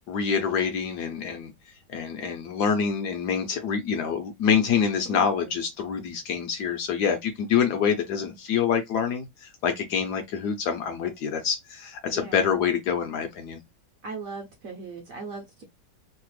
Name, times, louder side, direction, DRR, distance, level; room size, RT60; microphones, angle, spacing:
voice 1, 0.1-1.5 1.9-13.6, left 7 dB, 70° left, 1.0 m, -26 dB
voice 2, 12.1-12.5 14.0-15.6, right 4 dB, 60° right, 0.9 m, -38 dB
3.3 x 2.1 x 3.1 m
omnidirectional pair, 2.1 m